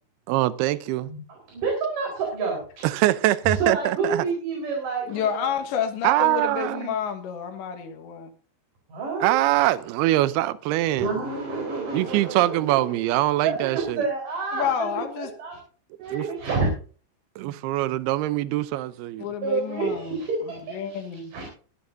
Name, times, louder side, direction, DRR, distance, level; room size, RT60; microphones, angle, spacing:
voice 1, 0.3-1.1 2.8-4.3 6.0-7.0 9.2-11.1 11.9-14.0 16.1-16.2 17.4-19.3, right 16 dB, 80° right, 2.3 m, -23 dB
voice 2, 1.5-2.8 3.6-5.5 8.9-9.3 10.9-12.9 13.4-14.7 15.2-15.6 16.0-16.7 19.4-21.4, right 4 dB, 45° right, 5.5 m, -28 dB
voice 3, 5.1-8.3 14.5-15.3 19.2-20.2 20.7-21.3, left 8 dB, 75° left, 3.7 m, -29 dB
22.5 x 11.5 x 2.7 m
omnidirectional pair, 5.4 m